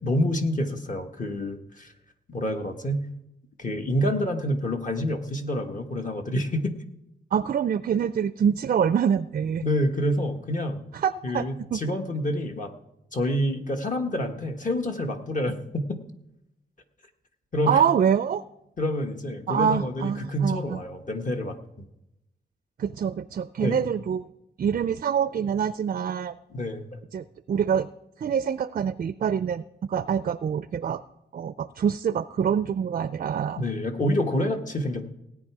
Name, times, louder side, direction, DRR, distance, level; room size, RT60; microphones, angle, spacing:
voice 1, 0.0-1.9 2.3-3.0 3.6-6.7 9.6-10.8 11.2-12.7 13.1-16.0 17.5-17.8 18.8-21.6 23.6-23.8 26.5-27.0 33.6-35.1, left 1 dB, 40° left, 4 dB, 1.3 m, -27 dB
voice 2, 7.3-9.6 10.9-11.8 17.7-18.4 19.5-20.8 22.8-24.2 24.6-26.4 27.1-27.9 28.2-31.0 31.3-33.6, right 8 dB, 45° right, 14 dB, 0.4 m, -25 dB
17.5 x 9.2 x 4.8 m, 0.89 s
cardioid pair, 95°, 19 cm